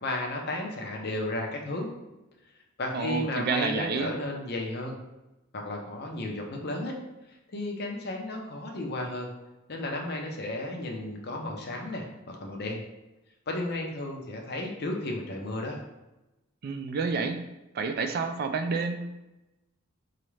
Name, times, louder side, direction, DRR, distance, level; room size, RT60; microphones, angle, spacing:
voice 1, 0.0-1.9 2.8-5.0 5.5-7.0 7.5-9.3 9.7-12.8 13.5-15.8, left 1 dB, 50° left, 1 dB, 0.6 m, -33 dB
voice 2, 2.9-4.1 16.6-17.5 17.7-19.2, right 4 dB, 50° right, 7 dB, 0.3 m, -29 dB
4.0 x 2.4 x 3.1 m, 0.99 s
head